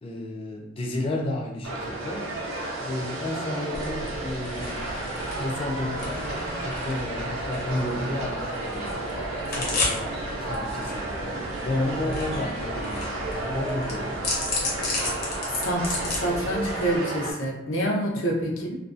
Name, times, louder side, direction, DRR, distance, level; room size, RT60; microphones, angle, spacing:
voice 1, 0.0-2.3 2.8-4.9 5.4-9.2 9.5-11.3 11.6-14.4 18.1-18.3, left 1 dB, 30° left, 0 dB, 0.3 m, -32 dB
sound 1, 1.6-17.3, right 2 dB, 85° right, 0.6 m, -32 dB
sound 2, 3.7-17.0, left 2 dB, 50° left, 0.7 m, -34 dB
voice 2, 15.6-18.8, right 1 dB, 90° left, -2 dB, 0.7 m, -27 dB
2.5 x 2.2 x 2.4 m, 0.94 s
head